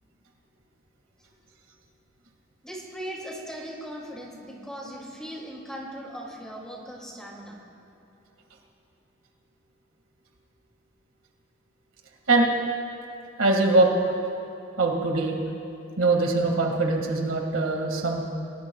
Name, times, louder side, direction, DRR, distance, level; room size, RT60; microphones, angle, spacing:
voice 1, 2.6-7.6, equal, 5° left, -2 dB, 2.3 m, -39 dB
voice 2, 13.4-13.9 14.8-15.4 16.0-18.2, right 2 dB, 75° right, 1 dB, 1.9 m, -22 dB
27.5 x 18.5 x 2.3 m, 2.8 s
head